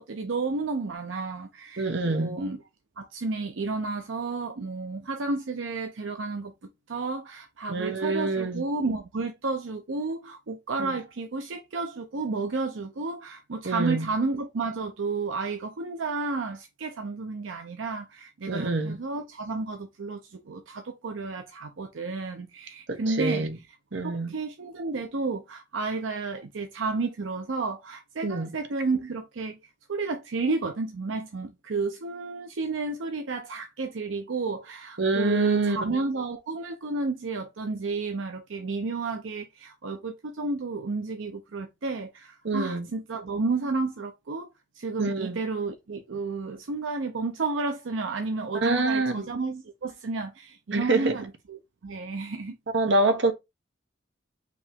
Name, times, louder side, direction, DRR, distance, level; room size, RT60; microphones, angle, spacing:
voice 1, 0.0-2.6 3.0-6.5 6.9-23.5 24.0-29.6 29.9-44.5 44.8-52.6, right 3 dB, 85° right, 0.6 m, -32 dB
voice 2, 1.8-2.4 7.7-8.6 10.8-10.9 13.6-14.0 18.5-19.0 22.9-23.5 23.9-24.3 28.2-28.5 35.0-35.9 42.4-42.9 45.0-45.4 48.6-49.3 50.7-51.1 52.7-53.3, right 2 dB, 65° right, 1.0 m, -26 dB
5.1 x 2.9 x 3.5 m
head